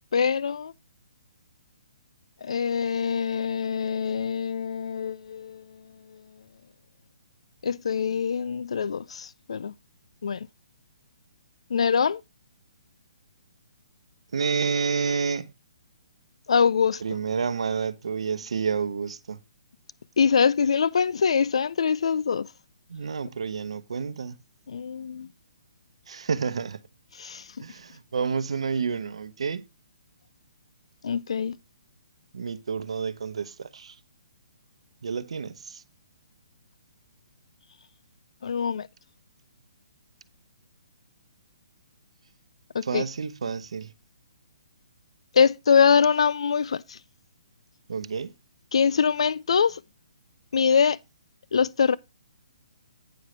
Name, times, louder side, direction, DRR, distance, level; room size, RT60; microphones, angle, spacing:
voice 1, 0.1-0.7 2.4-5.6 7.6-9.7 10.2-10.4 11.7-12.2 16.5-17.0 20.2-22.5 24.7-25.3 27.2-27.4 31.0-31.6 38.4-38.9 42.7-43.0 45.3-47.0 48.7-49.8 50.5-51.0 51.5-52.0, left 6 dB, 75° left, 0.3 m, -23 dB
voice 2, 14.3-15.5 17.0-19.4 22.9-24.4 26.1-26.8 27.6-29.6 32.3-33.9 35.0-35.8 42.8-43.9 47.9-48.3, right 5 dB, 75° right, 0.8 m, -29 dB
9.0 x 6.5 x 3.1 m
hypercardioid pair, 150°, 3 cm